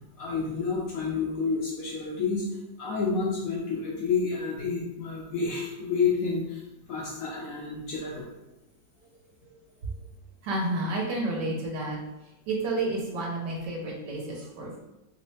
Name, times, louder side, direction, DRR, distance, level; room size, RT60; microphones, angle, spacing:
voice 1, 0.2-2.5 2.8-6.6 6.9-8.3, left 5 dB, 75° left, -2 dB, 0.8 m, -29 dB
voice 2, 10.4-12.0 12.5-14.8, right 2 dB, 70° right, -1 dB, 1.3 m, -30 dB
3.2 x 3.1 x 3.1 m, 0.93 s
omnidirectional pair, 2.0 m